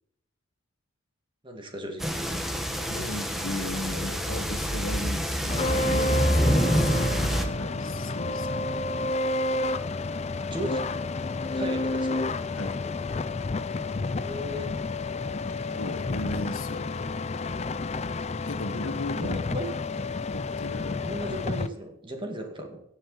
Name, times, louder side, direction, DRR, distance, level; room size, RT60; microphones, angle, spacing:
voice 1, 1.4-2.3 10.4-10.9 11.5-12.3 14.2-14.7 19.2-19.7 21.0-22.8, equal, 25° right, 3 dB, 2.0 m, -36 dB
sound 1, 2.0-7.5, equal, ahead, 1.1 m, -26 dB
voice 2, 2.9-8.7 12.6-12.8 15.5-16.9 18.4-19.4 19.9-20.1 20.3-21.1, left 2 dB, 80° left, 8 dB, 1.4 m, -36 dB
sound 2, 5.5-21.7, left 2 dB, 30° left, 0.5 m, -30 dB
17.0 x 7.1 x 4.1 m, 0.76 s
head